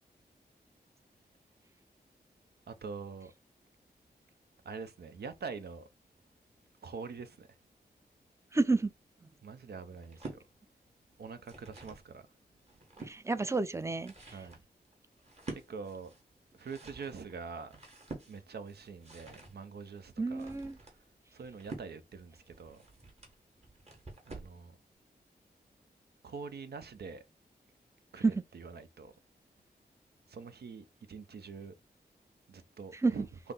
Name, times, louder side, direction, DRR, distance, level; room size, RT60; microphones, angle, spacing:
voice 1, 2.7-3.3 4.6-5.9 6.8-7.5 9.4-10.4 11.2-12.3 14.3-14.6 15.5-16.1 16.6-17.7 18.3-20.5 20.8-20.9 21.3-22.8 24.3-24.8 26.2-27.2 28.1-29.1 30.3-31.7 32.5-33.3, right 5 dB, 75° right, 0.6 m, -45 dB
voice 2, 8.5-8.9 13.0-14.1 20.2-20.8 28.2-28.4 33.0-33.1, right 3 dB, 15° right, 0.5 m, -29 dB
sound 1, 10.0-10.4 11.2-12.1 12.5-13.2 13.8-24.6, right 3 dB, 40° right, 1.6 m, -49 dB
5.6 x 2.0 x 4.0 m
wide cardioid pair, 75°, 17 cm